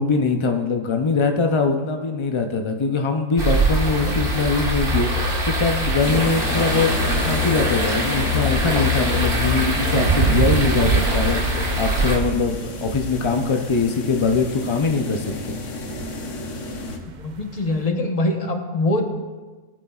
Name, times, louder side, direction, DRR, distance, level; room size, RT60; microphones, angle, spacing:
voice 1, 0.0-15.6, left 4 dB, 50° left, 4 dB, 0.3 m, -22 dB
sound 1, 3.4-12.2, equal, 45° right, 1.7 m, -22 dB
sound 2, 6.0-17.0, left 3 dB, 70° left, 1.3 m, -33 dB
sound 3, 9.9-17.8, right 7 dB, 65° right, 0.4 m, -27 dB
voice 2, 17.2-19.0, left 2 dB, 30° left, 4 dB, 0.9 m, -23 dB
18.0 x 9.0 x 2.4 m, 1.3 s
omnidirectional pair, 1.3 m